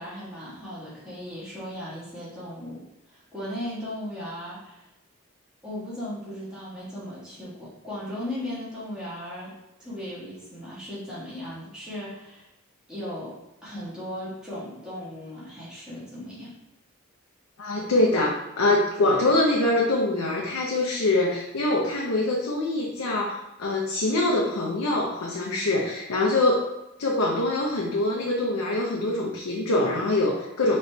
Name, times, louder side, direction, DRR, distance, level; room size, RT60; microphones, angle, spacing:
voice 1, 0.0-2.8 3.1-4.8 5.6-9.5 9.8-12.5 12.9-13.4 13.6-16.5, left 1 dB, 5° right, -9 dB, 1.4 m, -37 dB
voice 2, 17.6-26.6 27.0-30.8, left 2 dB, 85° left, -2 dB, 0.6 m, -24 dB
4.0 x 3.1 x 3.3 m, 0.95 s
head